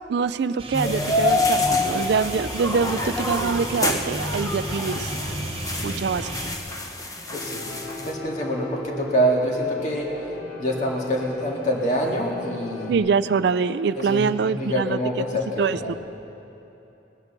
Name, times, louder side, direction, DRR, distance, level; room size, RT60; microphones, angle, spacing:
voice 1, 0.1-5.1 5.8-6.3 12.9-15.0 15.6-15.9, right 5 dB, 65° right, 14 dB, 0.4 m, -24 dB
sound 1, 0.6-6.6, right 1 dB, 30° right, 0.9 m, -34 dB
sound 2, 0.7-8.1, left 2 dB, 20° left, 0.9 m, -27 dB
Piano, 7.3-13.0, left 2 dB, 70° left, 3.6 m, -36 dB
voice 2, 7.3-7.7 8.0-10.1 10.6-13.0 14.0-16.0, equal, 40° left, -1 dB, 2.0 m, -25 dB
19.5 x 9.7 x 6.6 m, 3.0 s
head